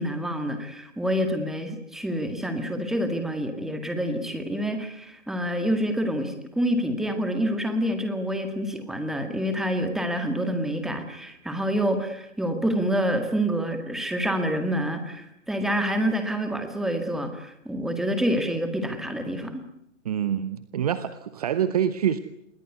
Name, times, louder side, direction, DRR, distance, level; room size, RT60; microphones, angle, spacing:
voice 1, 0.0-19.6, equal, ahead, 6 dB, 1.9 m, -27 dB
voice 2, 20.0-22.2, right 9 dB, 30° right, 13 dB, 1.0 m, -26 dB
27.0 x 21.0 x 9.5 m, 0.78 s
figure-of-eight pair, 140°, 39 cm